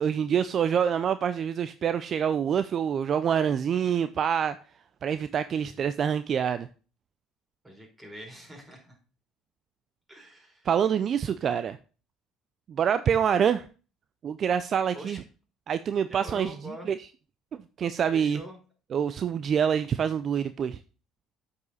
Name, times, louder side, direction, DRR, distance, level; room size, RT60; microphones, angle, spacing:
voice 1, 0.0-4.6 5.0-6.7 10.7-11.8 12.8-13.6 14.2-15.2 15.7-16.5 16.9-17.0 17.8-18.4 18.9-20.8, right 8 dB, 50° right, 12 dB, 0.4 m, -26 dB
voice 2, 7.6-9.0 10.1-10.7 14.9-15.2 16.1-16.9 18.1-18.6, equal, 15° right, 0 dB, 4.7 m, -44 dB
8.2 x 5.4 x 4.1 m, 0.36 s
supercardioid pair, 80°, 0 cm